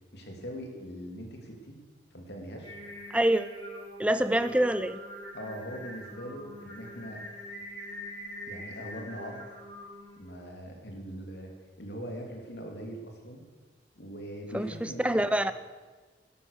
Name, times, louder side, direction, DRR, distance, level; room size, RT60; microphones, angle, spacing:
voice 1, 0.1-1.8 2.1-2.8 5.3-7.2 8.5-9.5 10.2-13.4 13.9-15.2, equal, 65° left, 2 dB, 2.8 m, -41 dB
Singing, 2.6-10.2, equal, 80° right, 5.4 m, -44 dB
voice 2, 3.1-3.5 4.0-5.0 14.5-15.5, right 1 dB, 5° right, 12 dB, 0.5 m, -26 dB
12.5 x 12.0 x 6.7 m, 1.4 s
head